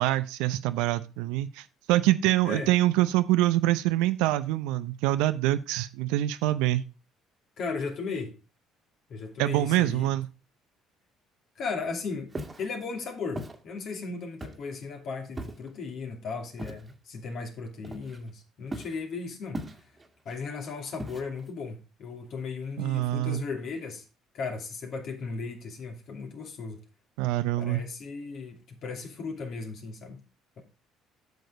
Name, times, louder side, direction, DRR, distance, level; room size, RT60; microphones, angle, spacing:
voice 1, 0.0-6.8 9.4-10.3 22.8-23.4 27.2-27.8, right 15 dB, 75° right, 0.5 m, -25 dB
voice 2, 7.6-8.4 9.1-10.1 11.6-12.3 12.6-19.6 20.2-24.0 24.3-26.8 27.6-30.2, left 4 dB, 55° left, 2.5 m, -36 dB
Walk footsteps, 12.3-12.7 13.4-13.6 14.4-14.8 15.4-15.7 16.6-16.9 17.8-18.3 18.7-19.0 19.5-20.1 21.0-21.5, right 1 dB, 25° right, 1.7 m, -38 dB
8.2 x 6.6 x 4.8 m
hypercardioid pair, 55°, 0 cm